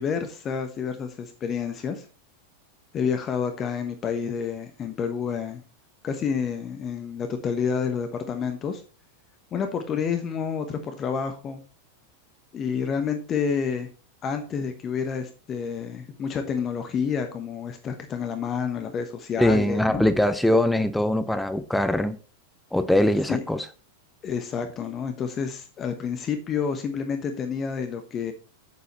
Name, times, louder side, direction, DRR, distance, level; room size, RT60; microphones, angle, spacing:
voice 1, 0.0-2.0 2.9-5.6 6.0-8.8 9.5-11.6 12.5-13.9 14.2-20.0 23.3-23.4 24.2-28.3, left 6 dB, 25° left, 1.1 m, -29 dB
voice 2, 19.4-22.2 22.7-23.6, left 1 dB, 5° left, 0.6 m, -22 dB
8.2 x 7.6 x 4.2 m
figure-of-eight pair, 90°, 0 cm